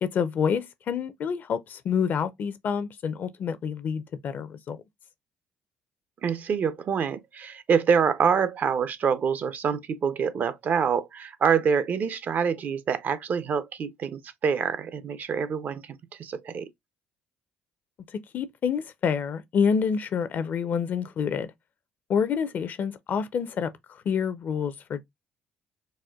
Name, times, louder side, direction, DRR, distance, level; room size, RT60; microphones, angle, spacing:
voice 1, 0.0-4.8 18.3-21.5 22.1-23.7 24.1-25.0, left 6 dB, 55° left, 0.5 m, -27 dB
voice 2, 6.2-16.7, right 6 dB, 50° right, 0.5 m, -26 dB
4.1 x 2.2 x 2.3 m
supercardioid pair, 75°, 4 cm